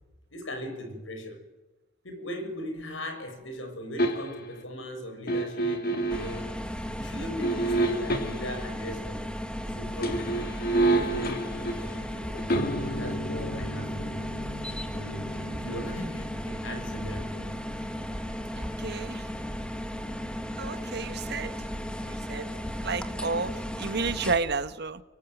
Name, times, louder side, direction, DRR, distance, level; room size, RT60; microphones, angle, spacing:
voice 1, 0.3-1.4 2.0-6.5 6.8-9.3 9.6-10.4 10.7-12.6 13.0-14.3 14.9-17.6, equal, 75° left, 6.2 m, -39 dB
sound 1, 4.0-4.6 5.3-6.4 7.4-8.6 9.9-20.8 21.1-21.2, right 2 dB, 50° left, 2.5 m, -31 dB
sound 2, 6.1-24.4, equal, 5° left, 1.8 m, -35 dB
voice 2, 18.6-19.3 20.6-21.6 22.0-25.0, right 4 dB, 55° right, 1.4 m, -32 dB
24.0 x 23.5 x 9.1 m
head